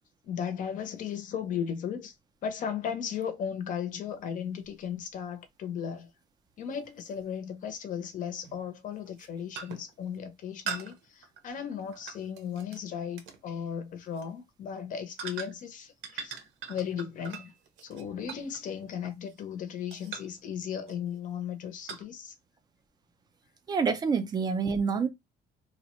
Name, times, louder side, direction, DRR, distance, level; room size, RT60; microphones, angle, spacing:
voice 1, 0.2-2.1 2.4-6.1 6.6-16.3 16.7-17.5 17.8-22.3, left 8 dB, 40° left, 0.5 m, -36 dB
sound 1, 4.6-4.7 7.2-7.3 8.4-8.7 9.1-9.3 9.6-9.9 10.7-12.8 13.2-13.4 14.1-14.3 15.2-15.7 16.0-19.5 19.9-20.4 20.9-21.2 21.9-22.0, right 6 dB, 75° right, 0.7 m, -41 dB
voice 2, 23.7-25.1, right 5 dB, 20° right, 0.4 m, -27 dB
2.8 x 2.1 x 2.9 m
cardioid pair, 175°, 20 cm